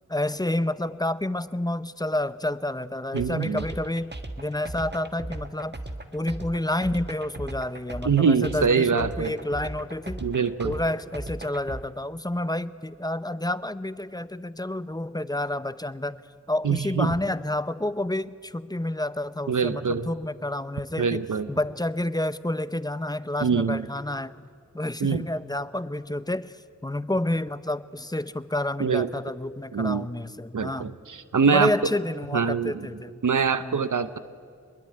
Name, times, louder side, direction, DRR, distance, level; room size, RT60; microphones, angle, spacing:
voice 1, 0.1-5.8 6.1-10.3 10.6-16.2 16.5-24.5 24.7-30.9 31.4-33.2 33.6-33.8, left 1 dB, 15° left, 14 dB, 0.8 m, -29 dB
voice 2, 3.1-3.6 8.0-9.3 10.2-10.7 16.6-17.1 19.5-20.1 21.0-21.5 23.4-23.9 25.0-25.2 28.8-29.1 29.7-30.1 30.5-31.7 32.3-32.9 33.2-34.2, right 6 dB, 80° right, 12 dB, 0.9 m, -24 dB
sound 1, 3.2-11.8, right 1 dB, 35° right, 1.8 m, -37 dB
25.0 x 21.0 x 9.6 m, 2.1 s
wide cardioid pair, 60°, 31 cm